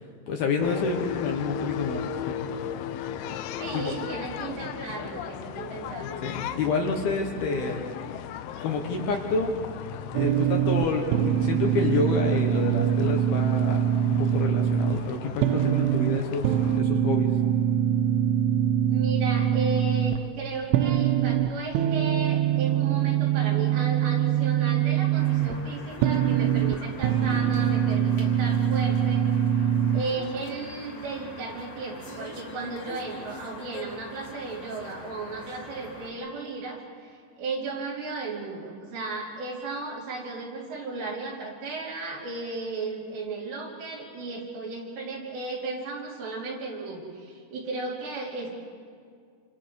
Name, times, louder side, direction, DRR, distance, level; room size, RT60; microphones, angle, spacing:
voice 1, 0.0-2.4 3.7-3.9 6.0-7.8 8.6-9.5 10.1-13.8 14.1-17.3, left 4 dB, 65° left, 1 dB, 2.9 m, -29 dB
sound 1, 0.6-16.8, left 9 dB, 85° left, 2.2 m, -37 dB
voice 2, 3.6-6.3 18.9-29.7 29.9-48.5, right 3 dB, 65° right, -3 dB, 5.5 m, -35 dB
sound 2, 10.1-30.0, right 10 dB, 85° right, 3.1 m, -24 dB
sound 3, 25.1-36.1, left 2 dB, 35° left, 3.3 m, -43 dB
28.5 x 26.5 x 4.8 m, 2.1 s
omnidirectional pair, 5.5 m